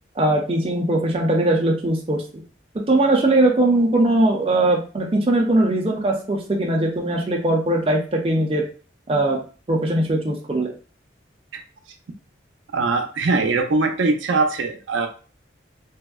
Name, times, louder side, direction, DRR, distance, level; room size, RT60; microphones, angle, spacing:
voice 1, 0.2-2.2 2.9-8.7 9.1-9.4 9.7-10.7, right 1 dB, 30° right, 0 dB, 0.5 m, -20 dB
voice 2, 12.7-15.1, right 3 dB, 90° right, 4 dB, 0.5 m, -21 dB
3.4 x 2.0 x 2.3 m, 0.37 s
head